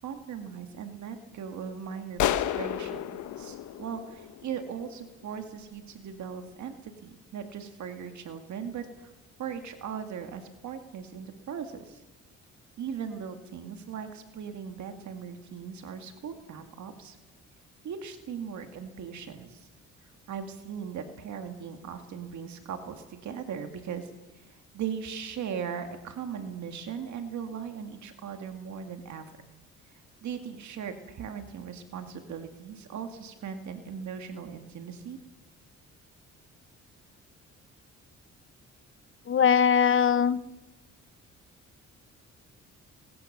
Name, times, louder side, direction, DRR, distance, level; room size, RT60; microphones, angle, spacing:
voice 1, 0.0-9.1 9.4-12.0 12.8-17.2 17.8-19.7 20.0-29.3 29.9-35.2, right 7 dB, 70° right, 6 dB, 2.2 m, -39 dB
sound 1, 2.2-4.8, left 11 dB, 75° left, 1.2 m, -31 dB
voice 2, 39.3-40.4, left 7 dB, 45° left, 15 dB, 1.0 m, -21 dB
22.0 x 20.0 x 6.8 m, 1.1 s
cardioid pair, 90°, 30 cm